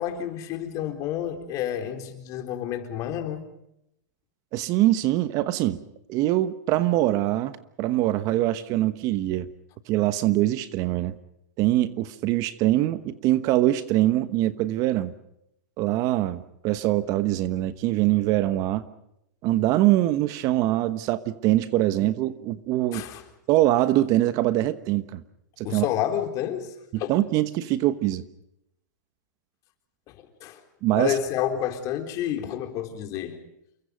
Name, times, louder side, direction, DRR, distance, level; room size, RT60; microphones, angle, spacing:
voice 1, 0.0-3.5 22.9-23.2 25.6-27.1 30.1-30.2 30.4-30.6 30.9-33.4, left 10 dB, 35° left, 3.9 m, -29 dB
voice 2, 4.5-5.8 6.1-9.5 9.9-11.1 11.6-15.1 15.8-18.9 19.4-23.0 23.5-25.2 25.6-25.9 26.9-28.2 30.8-31.2, right 15 dB, 35° right, 1.2 m, -23 dB
29.0 x 23.0 x 5.2 m
hypercardioid pair, 135°, 10 cm